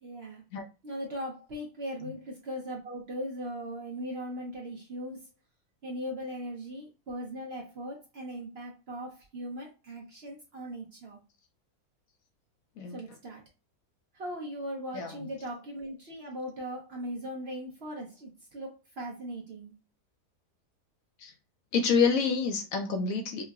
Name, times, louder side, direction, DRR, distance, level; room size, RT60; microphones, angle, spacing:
voice 1, 0.0-0.4 0.8-5.2 5.8-11.2 12.9-13.4 14.2-19.7, equal, 55° right, 0.8 m, -39 dB
voice 2, 14.9-15.3 21.2-21.3 21.7-23.4, left 5 dB, 70° left, 0.9 m, -27 dB
4.4 x 2.1 x 2.3 m
omnidirectional pair, 1.7 m